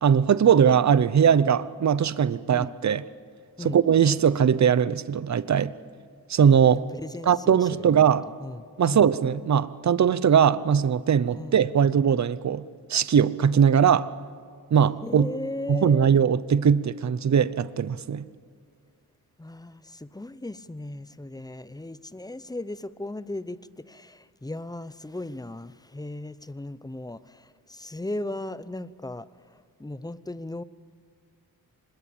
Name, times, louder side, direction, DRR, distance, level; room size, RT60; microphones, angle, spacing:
voice 1, 0.0-3.0 3.6-5.7 6.3-6.8 7.3-8.2 8.8-12.6 12.9-14.1 14.7-15.3 15.7-18.3, right 7 dB, 45° right, 0.8 m, -20 dB
voice 2, 6.7-8.0 8.4-9.0 11.3-11.6 15.0-16.1 19.4-30.6, left 1 dB, 10° left, 0.8 m, -37 dB
25.5 x 21.0 x 8.7 m
wide cardioid pair, 95°, 38 cm